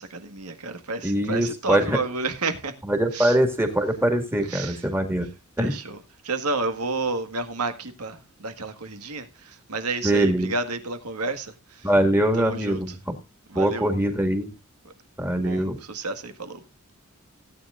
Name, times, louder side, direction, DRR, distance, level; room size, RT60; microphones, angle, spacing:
voice 1, 0.0-2.7 3.1-3.4 4.4-4.8 5.6-6.0 6.2-11.9 12.4-12.8 13.5-13.9 15.4-16.6, right 3 dB, 90° right, 1.7 m, -31 dB
voice 2, 1.0-2.0 2.8-5.3 5.6-5.8 10.0-10.5 11.8-13.2 13.6-14.5 15.2-15.8, right 1 dB, 10° right, 1.9 m, -23 dB
17.5 x 9.0 x 2.5 m
head